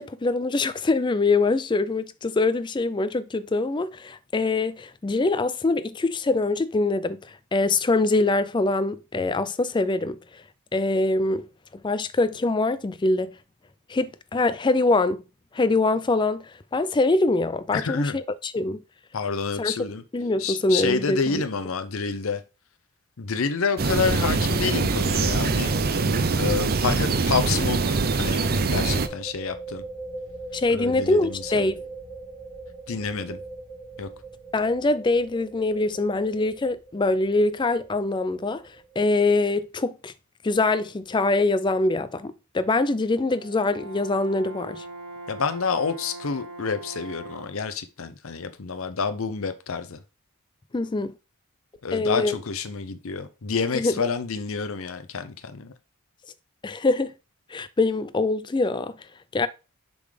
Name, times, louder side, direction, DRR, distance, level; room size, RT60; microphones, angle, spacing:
voice 1, 0.0-10.2 10.7-11.5 11.8-13.3 13.9-15.2 15.5-18.8 19.6-19.7 20.1-21.4 30.5-31.8 34.5-38.6 39.0-40.1 40.4-44.8 50.7-51.1 51.9-52.4 53.7-54.1 56.6-57.1 57.5-58.9 59.3-59.5, left 2 dB, 20° left, 0.3 m, -24 dB
voice 2, 17.7-18.2 19.1-20.0 20.4-22.4 23.2-25.7 26.3-28.4 28.7-29.8 30.7-31.7 32.9-33.4 34.0-34.1 45.3-50.0 51.8-55.7, left 5 dB, 65° left, 0.6 m, -28 dB
sound 1, 23.8-29.1, right 3 dB, 40° right, 0.6 m, -23 dB
sound 2, 28.3-39.6, right 3 dB, 35° left, 2.8 m, -41 dB
Brass instrument, 43.3-47.7, right 2 dB, 70° right, 1.6 m, -41 dB
6.9 x 3.9 x 4.9 m
head